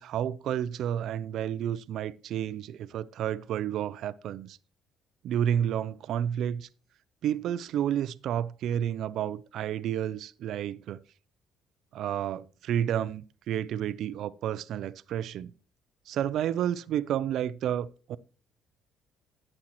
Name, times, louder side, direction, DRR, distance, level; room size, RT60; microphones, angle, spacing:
voice 1, 0.0-4.6 5.2-6.7 7.2-11.0 11.9-15.5 16.1-18.2, right 10 dB, 65° right, 0.4 m, -31 dB
11.5 x 8.8 x 3.0 m
cardioid pair, 125°, 0 cm